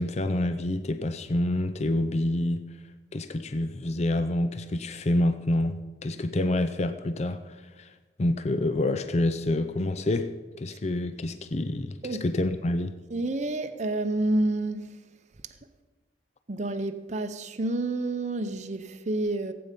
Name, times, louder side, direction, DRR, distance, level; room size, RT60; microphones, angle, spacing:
voice 1, 0.0-2.7 3.1-7.9 8.2-12.9, left 1 dB, 40° left, 0.5 m, -27 dB
voice 2, 13.1-15.0 16.5-19.5, right 2 dB, 40° right, 0.7 m, -29 dB
16.5 x 8.6 x 5.2 m
head